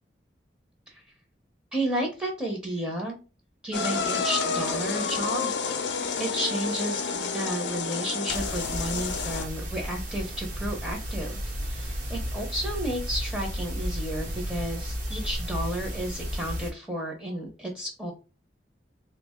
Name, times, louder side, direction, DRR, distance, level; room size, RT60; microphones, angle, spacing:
voice 1, 1.7-3.2 3.6-5.5 6.2-18.1, right 1 dB, 5° right, -1 dB, 0.7 m, -32 dB
Tea Kettle Whistling On A Gas Stove, 3.7-9.4, left 5 dB, 75° left, 0.5 m, -29 dB
sound 1, 8.3-16.7, equal, 50° right, 0.9 m, -33 dB
3.3 x 2.1 x 3.5 m, 0.31 s
head